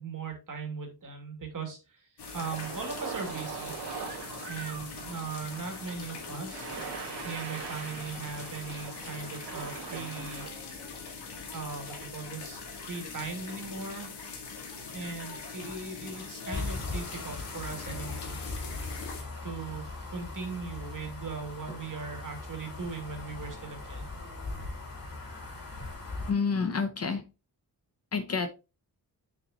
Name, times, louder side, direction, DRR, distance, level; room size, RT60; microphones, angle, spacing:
voice 1, 0.0-2.1 2.3-3.8 4.5-6.7 7.0-10.7 11.5-14.1 14.9-18.4 19.4-24.1, right 5 dB, 50° right, 2.5 m, -39 dB
sound 1, 2.2-19.2, left 5 dB, 90° left, 2.0 m, -42 dB
sound 2, 2.2-10.5, right 6 dB, 85° right, 2.1 m, -41 dB
sound 3, 16.5-26.3, left 3 dB, 60° left, 3.0 m, -39 dB
voice 2, 26.3-27.2 28.1-28.5, left 5 dB, 40° left, 0.8 m, -28 dB
7.1 x 6.0 x 3.0 m
cardioid pair, 100°, 39 cm